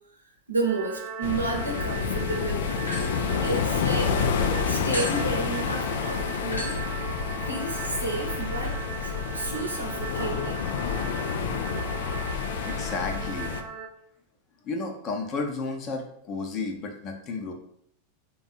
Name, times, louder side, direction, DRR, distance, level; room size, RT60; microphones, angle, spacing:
voice 1, 0.5-2.9 3.4-4.2 4.7-6.8 7.5-10.6, right 3 dB, 80° right, 1 dB, 0.7 m, -31 dB
sound 1, 0.6-13.9, right 6 dB, 10° right, 0.6 m, -39 dB
sound 2, 1.2-13.6, left 6 dB, 55° left, 0.4 m, -29 dB
sound 3, 2.9-4.3 4.9-13.2, left 1 dB, 85° left, 0.9 m, -41 dB
voice 2, 12.3-13.5 14.6-17.5, left 3 dB, 30° left, 3 dB, 0.7 m, -33 dB
3.5 x 2.4 x 4.0 m, 0.70 s
figure-of-eight pair, 90°, 0 cm